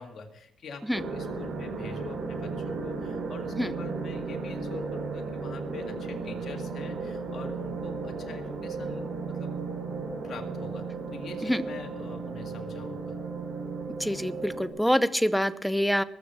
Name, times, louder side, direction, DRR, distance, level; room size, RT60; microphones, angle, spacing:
voice 1, 0.0-9.5 9.8-13.1, left 4 dB, 55° left, 3 dB, 2.0 m, -44 dB
sound 1, 0.9-14.7, right 4 dB, 75° right, 4.6 m, -35 dB
voice 2, 14.0-16.0, equal, ahead, 14 dB, 0.7 m, -26 dB
19.5 x 7.1 x 5.9 m, 0.80 s
cardioid pair, 90°, 0 cm